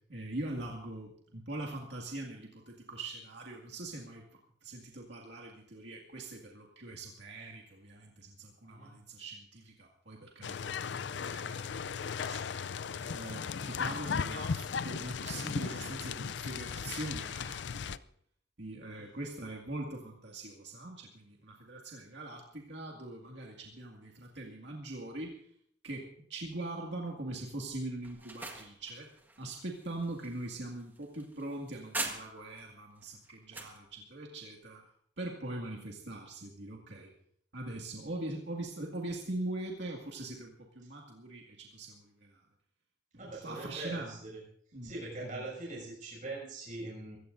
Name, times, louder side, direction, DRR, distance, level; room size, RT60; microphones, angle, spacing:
voice 1, 0.1-4.2 4.6-12.4 13.1-18.0 18.6-25.4 25.8-29.1 29.4-34.8 35.2-37.1 37.5-42.4 43.1-44.2 44.7-44.9 45.2-45.4, right 2 dB, 65° right, -1 dB, 2.1 m, -42 dB
sound 1, 10.4-18.0, left 6 dB, 70° left, 0.5 m, -36 dB
voice 2, 12.9-13.3 18.9-19.1 43.2-44.4 44.8-47.2, right 2 dB, 45° right, -2 dB, 6.6 m, -42 dB
sound 2, 28.0-32.6 33.0-33.8, right 2 dB, 10° right, 1.5 m, -42 dB
24.0 x 16.0 x 2.6 m, 0.64 s
head